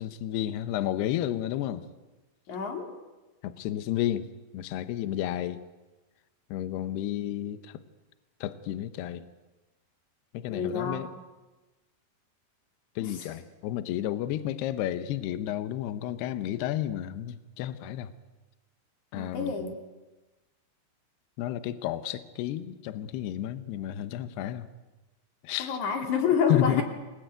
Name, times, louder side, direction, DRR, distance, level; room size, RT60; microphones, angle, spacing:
voice 1, 0.0-1.9 3.4-4.3 4.5-5.6 6.5-7.8 8.4-9.2 10.3-11.1 13.0-18.1 19.1-19.7 21.4-24.7 25.4-25.8 26.5-26.8, left 12 dB, 75° left, 12 dB, 2.9 m, -31 dB
voice 2, 2.5-2.9 7.2-7.3 10.5-11.0 13.0-13.3 19.1-19.8 25.6-26.8, left 6 dB, 50° left, 4 dB, 3.7 m, -28 dB
27.0 x 19.5 x 9.3 m, 1.1 s
omnidirectional pair, 4.9 m